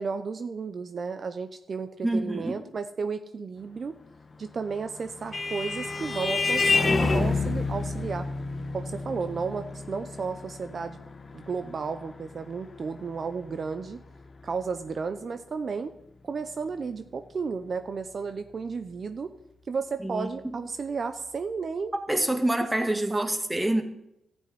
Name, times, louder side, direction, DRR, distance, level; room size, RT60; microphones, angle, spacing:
voice 1, 0.0-3.9 4.4-8.3 8.7-11.0 11.3-14.0 14.4-15.9 16.2-19.3 19.7-21.9 23.1-23.3, right 5 dB, 50° right, 9 dB, 0.7 m, -33 dB
voice 2, 2.0-2.6 20.0-20.6 22.1-23.8, right 1 dB, 10° right, 6 dB, 1.9 m, -27 dB
Vehicle horn car horn honking, 4.7-13.7, left 3 dB, 35° left, 1.3 m, -29 dB
12.5 x 6.4 x 9.5 m, 0.81 s
cardioid pair, 70°, 0 cm